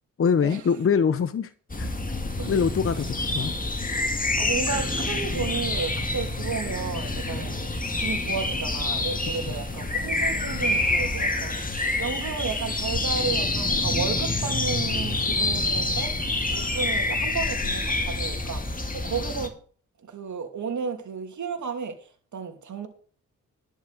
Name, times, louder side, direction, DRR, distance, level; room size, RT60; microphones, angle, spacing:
voice 1, 0.2-1.5 1.8-1.9 2.5-3.5 7.3-7.4 9.5-9.6, left 6 dB, 45° left, 0.8 m, -24 dB
sound 1, 1.7-19.5, left 2 dB, 25° left, 2.2 m, -27 dB
voice 2, 4.4-16.1 16.5-19.5 20.1-22.0 22.3-22.9, right 5 dB, 65° right, 2.8 m, -33 dB
11.5 x 6.5 x 6.6 m
cardioid pair, 70°, 32 cm